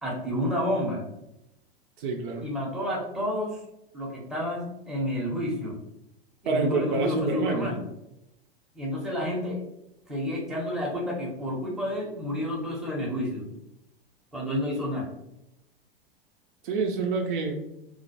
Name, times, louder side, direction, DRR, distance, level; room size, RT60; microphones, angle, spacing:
voice 1, 0.0-1.0 2.4-3.6 3.9-5.8 6.4-7.8 8.7-9.6 10.1-13.5 14.3-15.1, equal, ahead, -4 dB, 0.7 m, -30 dB
voice 2, 2.0-2.5 6.5-7.7 16.6-17.6, right 4 dB, 60° right, 3 dB, 0.5 m, -27 dB
2.2 x 2.0 x 2.8 m, 0.86 s
figure-of-eight pair, 90°, 30 cm